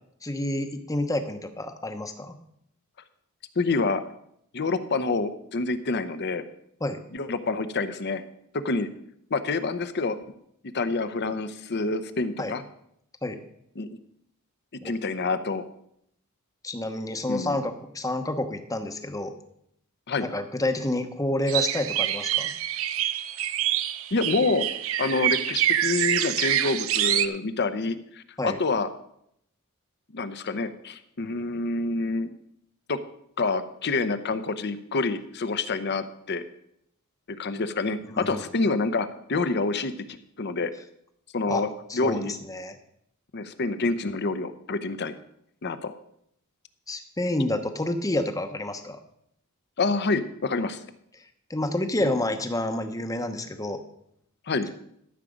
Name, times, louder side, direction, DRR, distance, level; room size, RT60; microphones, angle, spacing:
voice 1, 0.2-2.3 6.8-7.0 12.4-12.5 13.2-13.4 14.8-14.9 16.6-19.4 20.2-22.5 28.4-28.6 38.3-38.4 41.5-42.8 46.9-49.0 51.5-53.8, left 1 dB, 15° left, 7 dB, 0.9 m, -29 dB
voice 2, 3.6-4.1 4.5-6.4 7.1-8.2 8.5-8.9 9.3-10.2 10.7-12.6 13.8-13.9 14.8-15.7 17.3-17.6 20.1-20.3 24.1-24.7 25.0-28.9 30.1-32.3 32.9-33.0 33.4-36.4 37.3-40.7 41.3-41.7 41.9-42.3 43.3-45.1 45.6-46.0 49.8-50.8 52.0-52.1 54.5-54.7, left 3 dB, 50° left, 11 dB, 0.8 m, -27 dB
sound 1, 21.5-27.3, right 11 dB, 65° right, 0.6 m, -26 dB
13.5 x 7.4 x 5.1 m, 0.73 s
head